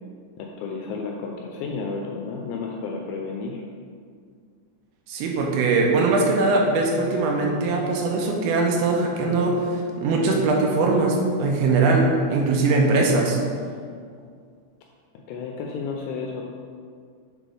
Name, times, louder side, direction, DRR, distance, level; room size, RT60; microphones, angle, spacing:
voice 1, 0.4-3.6 15.3-16.4, left 4 dB, 85° left, 0 dB, 2.6 m, -32 dB
voice 2, 5.1-9.6 10.0-13.4, right 3 dB, 85° right, 0 dB, 2.9 m, -21 dB
7.5 x 4.0 x 3.5 m, 2.1 s
omnidirectional pair, 5.4 m